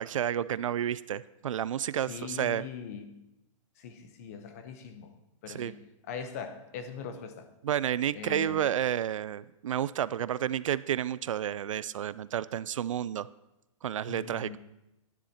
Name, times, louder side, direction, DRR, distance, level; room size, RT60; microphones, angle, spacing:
voice 1, 0.0-2.6 5.5-5.7 7.6-13.3 13.8-14.6, right 10 dB, 70° right, 18 dB, 0.4 m, -31 dB
voice 2, 2.1-3.1 3.8-5.1 5.4-5.8 6.1-7.5 8.1-8.7 14.1-14.6, left 6 dB, 30° left, 9 dB, 0.8 m, -41 dB
10.5 x 10.0 x 4.2 m, 0.91 s
hypercardioid pair, 170°, 17 cm